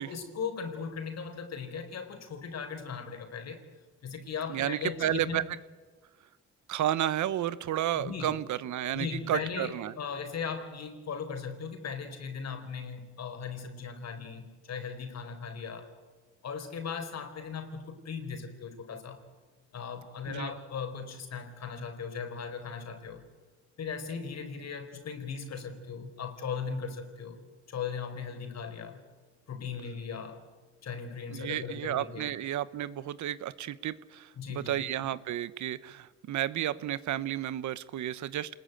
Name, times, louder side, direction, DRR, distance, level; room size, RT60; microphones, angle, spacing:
voice 1, 0.0-3.6 4.0-5.4 8.0-8.4 8.9-15.9 16.4-19.2 19.7-23.2 23.8-27.4 27.7-29.0 29.5-30.4 30.8-32.3 34.3-34.9, left 6 dB, 60° left, 7 dB, 4.4 m, -38 dB
voice 2, 4.5-5.4 6.7-9.9 20.3-20.5 31.3-38.6, right 12 dB, 70° right, 17 dB, 1.0 m, -32 dB
27.5 x 20.5 x 9.1 m, 1.3 s
cardioid pair, 90°, 30 cm